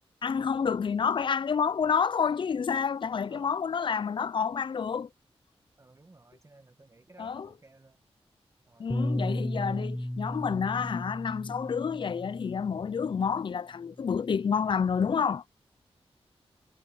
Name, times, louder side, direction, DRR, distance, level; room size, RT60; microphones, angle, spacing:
voice 1, 0.2-5.1 7.2-7.5 8.8-15.4, left 6 dB, 50° left, 0.4 m, -29 dB
voice 2, 5.8-8.0 8.7-8.9, right 2 dB, 30° right, 1.4 m, -57 dB
Bass guitar, 8.9-13.4 14.2-15.1, left 1 dB, 5° left, 0.7 m, -35 dB
cardioid pair, 70°, 11 cm